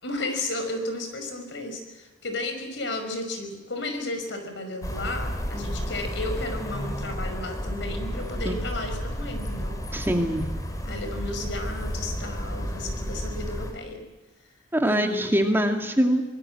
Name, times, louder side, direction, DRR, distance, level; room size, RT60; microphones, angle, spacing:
voice 1, 0.0-9.8 10.8-14.0 14.8-15.6, left 2 dB, 70° left, 6 dB, 5.6 m, -33 dB
sound 1, 4.8-13.7, equal, 20° left, 3.9 m, -32 dB
voice 2, 9.9-10.5 14.7-16.2, equal, 10° right, 3 dB, 2.4 m, -23 dB
25.0 x 20.5 x 7.8 m, 1.1 s
head